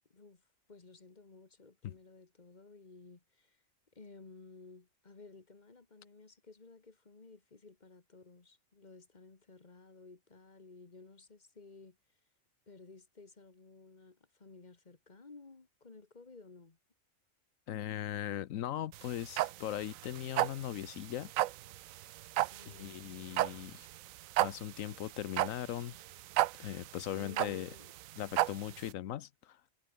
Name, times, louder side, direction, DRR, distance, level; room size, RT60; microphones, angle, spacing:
voice 1, 0.1-3.6 3.9-12.0 12.7-16.8 22.5-22.9 27.1-27.9, left 3 dB, 35° left, 1.8 m, -55 dB
voice 2, 17.7-21.3 22.7-23.9 24.4-26.0 26.6-27.7 28.2-29.6, left 12 dB, 85° left, 1.1 m, -39 dB
sound 1, 18.9-28.9, right 15 dB, 85° right, 1.0 m, -33 dB
omnidirectional pair, 1.4 m